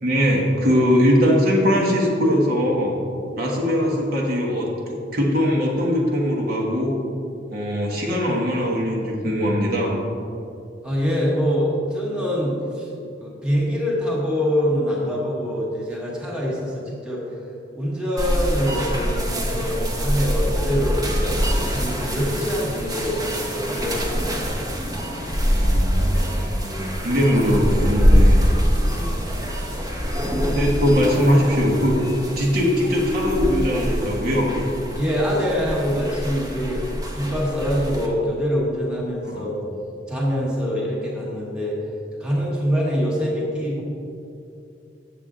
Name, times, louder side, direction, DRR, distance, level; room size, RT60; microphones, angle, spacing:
voice 1, 0.0-3.0 3.4-6.9 7.5-10.0 24.4-24.6 25.4-26.8 27.0-28.4 30.4-32.0 32.3-34.5 39.2-39.5, equal, 55° right, -2 dB, 1.3 m, -21 dB
voice 2, 10.8-12.9 13.2-17.2 17.7-23.2 23.5-24.5 35.0-36.8 37.1-39.6 40.1-41.8 42.2-43.8, equal, 5° right, -5 dB, 1.3 m, -24 dB
sound 1, 18.2-38.1, equal, 20° right, 0.9 m, -24 dB
8.4 x 6.9 x 3.7 m, 2.7 s
head